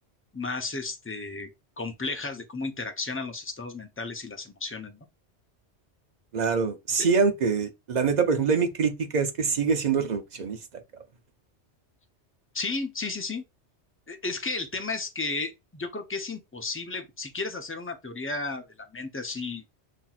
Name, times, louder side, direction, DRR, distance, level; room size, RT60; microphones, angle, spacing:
voice 1, 0.3-1.5 1.8-5.0 12.5-13.4 14.1-18.6 18.9-19.6, left 3 dB, 20° left, 0.3 m, -33 dB
voice 2, 6.3-10.8, right 5 dB, 50° right, 0.6 m, -25 dB
5.7 x 2.7 x 2.3 m
omnidirectional pair, 1.1 m